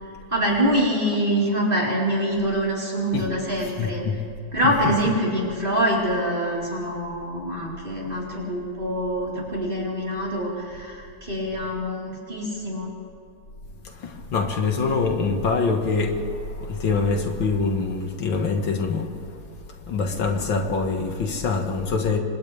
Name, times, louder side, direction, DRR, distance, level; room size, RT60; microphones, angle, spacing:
voice 1, 0.3-4.0 4.5-13.0, equal, 25° right, -5 dB, 4.7 m, -25 dB
voice 2, 3.8-4.1 14.0-19.1 19.9-22.2, left 4 dB, 80° left, 3 dB, 2.4 m, -24 dB
30.0 x 25.0 x 3.5 m, 2.4 s
omnidirectional pair, 2.1 m